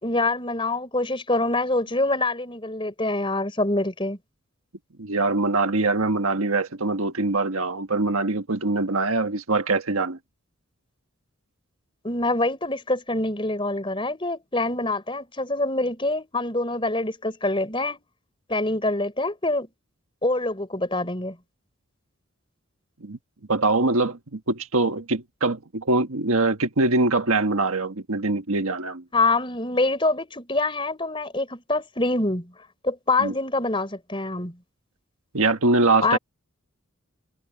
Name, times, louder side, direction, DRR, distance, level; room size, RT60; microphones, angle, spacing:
voice 1, 0.0-4.2 12.0-18.0 18.5-19.7 20.2-21.4 29.1-32.5 32.8-34.6 36.0-36.2, left 2 dB, 25° left, 4.2 m, -25 dB
voice 2, 5.0-10.2 23.0-23.2 23.5-29.0 33.2-33.3 35.3-36.2, right 3 dB, 80° right, 1.5 m, -23 dB
head